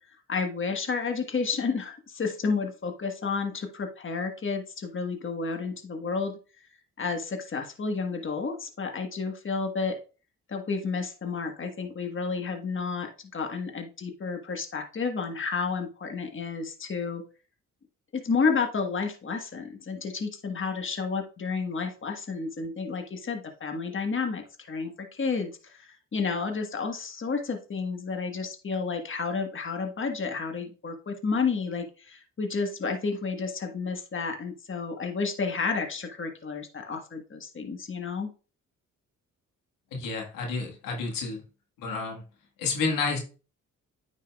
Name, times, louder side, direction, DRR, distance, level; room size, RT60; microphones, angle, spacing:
voice 1, 0.3-6.4 7.0-10.0 10.5-17.2 18.1-38.3, left 4 dB, 40° left, 5 dB, 1.4 m, -31 dB
voice 2, 39.9-41.4 41.8-42.2 42.6-43.2, left 4 dB, 90° left, 1 dB, 1.7 m, -30 dB
9.5 x 5.5 x 2.3 m, 0.35 s
supercardioid pair, 60°, 32 cm